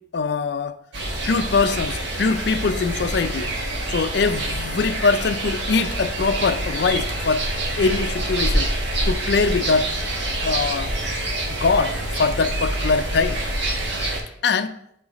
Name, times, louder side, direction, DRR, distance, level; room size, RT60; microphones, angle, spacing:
voice 1, 0.1-0.8 1.2-3.5 3.9-7.4 7.8-8.7 9.1-9.9 10.4-10.9 11.5-13.4 14.4-14.8, left 4 dB, 60° left, 0.4 m, -22 dB
Lots of skylarks, 0.9-14.2, right 1 dB, 70° right, 1.3 m, -26 dB
11.0 x 3.9 x 3.0 m
head